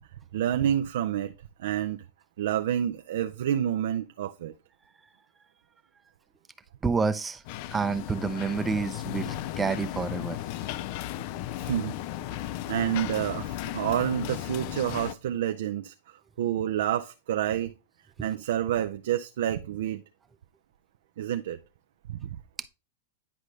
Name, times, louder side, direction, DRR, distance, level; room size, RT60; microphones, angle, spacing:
voice 1, 0.3-1.3 1.6-2.0 2.4-4.5 11.6-12.0 12.3-17.7 18.2-20.0 21.2-21.6 22.1-22.4, right 10 dB, 75° right, 0.4 m, -29 dB
voice 2, 6.8-7.4 7.7-10.4, right 5 dB, 15° right, 0.5 m, -28 dB
sound 1, 7.5-15.1, left 14 dB, 55° left, 0.4 m, -35 dB
9.8 x 5.1 x 3.2 m
hypercardioid pair, 125°, 0 cm